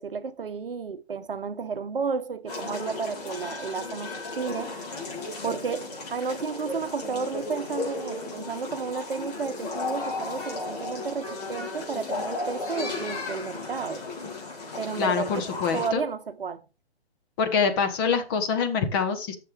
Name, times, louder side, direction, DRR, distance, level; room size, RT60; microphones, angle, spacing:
voice 1, 0.0-4.7 5.4-14.1 14.8-15.5 15.7-16.6, right 5 dB, 60° right, 0.9 m, -32 dB
sound 1, 2.5-15.9, left 3 dB, 40° left, 3.9 m, -35 dB
voice 2, 15.0-16.0 17.4-19.4, left 6 dB, 20° left, 1.2 m, -25 dB
11.5 x 6.7 x 3.3 m
figure-of-eight pair, 135°, 32 cm